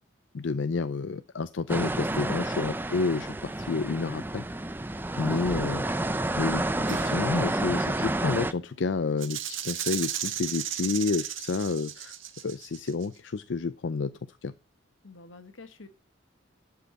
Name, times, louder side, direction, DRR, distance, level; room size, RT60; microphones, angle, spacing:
voice 1, 0.3-4.4 5.2-5.8 6.3-12.1 12.4-14.5, left 4 dB, 70° left, 13 dB, 0.5 m, -30 dB
sound 1, 1.7-8.5, right 1 dB, 10° right, 0.5 m, -30 dB
sound 2, 6.9-10.4, right 3 dB, 65° right, 2.6 m, -48 dB
Rattle (instrument), 9.2-13.0, right 11 dB, 80° right, 1.5 m, -34 dB
voice 2, 15.0-15.9, left 3 dB, 85° left, 10 dB, 1.4 m, -48 dB
11.5 x 5.7 x 4.0 m, 0.35 s
head